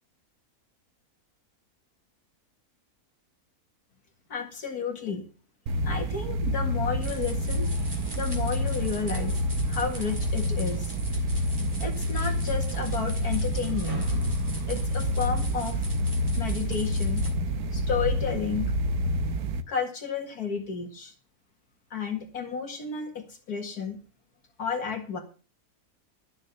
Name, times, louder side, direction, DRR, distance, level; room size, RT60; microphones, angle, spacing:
voice 1, 4.3-5.2 5.8-7.7 8.1-10.9 11.8-15.8 16.4-17.3 17.7-18.8 19.7-21.1 21.9-24.0 24.6-25.2, left 6 dB, 80° left, 4 dB, 2.4 m, -32 dB
sound 1, 5.7-19.6, equal, 75° right, 1.4 m, -28 dB
sound 2, 7.0-17.3, right 1 dB, 15° right, 3.2 m, -43 dB
13.5 x 6.7 x 6.7 m, 0.37 s
omnidirectional pair, 1.6 m